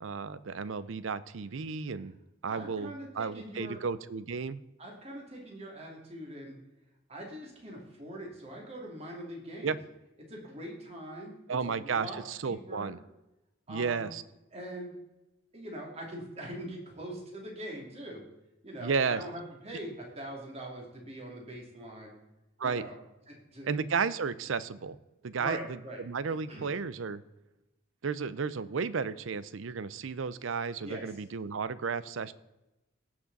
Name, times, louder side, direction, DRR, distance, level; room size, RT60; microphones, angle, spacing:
voice 1, 0.0-2.2 2.4-4.6 9.6-9.8 11.5-13.0 13.7-14.2 18.8-19.2 22.6-22.9 23.6-25.0 25.2-27.2 28.0-32.3, right 5 dB, 80° right, 16 dB, 0.6 m, -33 dB
voice 2, 2.5-3.8 4.8-6.6 7.1-9.7 10.3-11.4 11.6-12.9 13.7-14.1 14.5-14.9 15.5-18.2 18.6-22.2 22.6-23.0 23.3-23.7 25.4-26.0 26.5-26.7 30.8-31.1, right 1 dB, 30° right, -1 dB, 2.6 m, -42 dB
18.0 x 6.1 x 4.0 m, 0.97 s
head